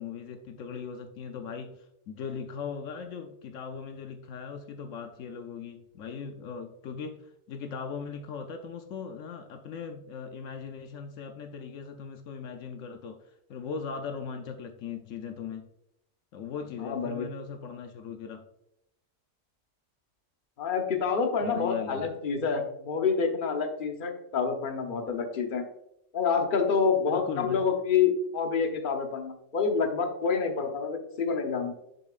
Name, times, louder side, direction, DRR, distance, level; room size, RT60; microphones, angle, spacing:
voice 1, 0.0-15.7 16.3-18.5 21.4-22.1 27.1-27.7, left 6 dB, 75° left, 6 dB, 1.0 m, -39 dB
voice 2, 16.8-17.3 20.6-25.6 26.1-31.7, left 5 dB, 45° left, 4 dB, 1.0 m, -27 dB
7.0 x 6.9 x 2.4 m, 0.79 s
omnidirectional pair, 1.4 m